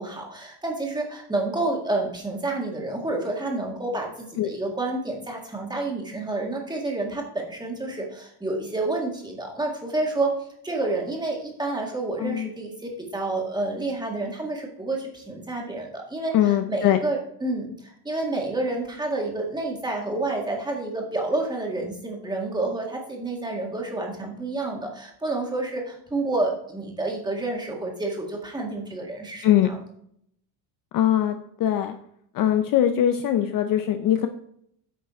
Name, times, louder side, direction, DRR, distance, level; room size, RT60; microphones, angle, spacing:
voice 1, 0.0-29.8, right 2 dB, 10° right, 0 dB, 1.9 m, -29 dB
voice 2, 16.3-17.0 29.4-29.7 30.9-32.0 32.3-34.3, left 11 dB, 45° left, 7 dB, 0.6 m, -21 dB
9.5 x 6.0 x 4.2 m, 0.70 s
cardioid pair, 155°, 50 cm